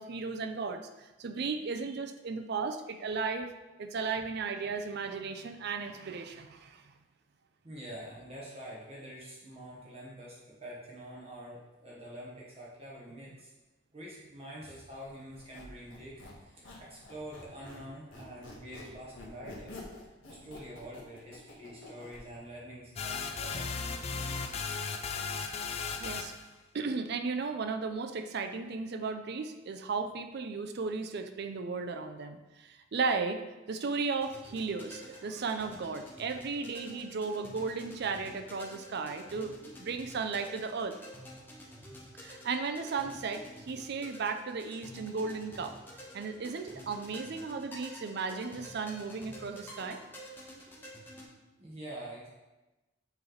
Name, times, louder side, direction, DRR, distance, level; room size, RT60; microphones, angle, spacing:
voice 1, 0.0-3.5 3.8-6.8 24.5-24.6 26.0-26.3 26.7-33.4 33.7-39.5 39.8-41.0 42.1-45.7 46.1-50.0, right 4 dB, 55° right, 7 dB, 0.5 m, -35 dB
voice 2, 7.6-13.5 13.9-23.7 51.6-52.3, right 1 dB, 30° right, -6 dB, 1.2 m, -46 dB
Squeak, 15.3-17.9 18.1-22.2, left 2 dB, 85° left, 1.4 m, -48 dB
sound 1, 23.0-26.5, left 5 dB, 35° left, 0.4 m, -36 dB
sound 2, 34.1-51.2, equal, 10° left, 1.0 m, -50 dB
7.2 x 3.3 x 3.9 m, 1.1 s
head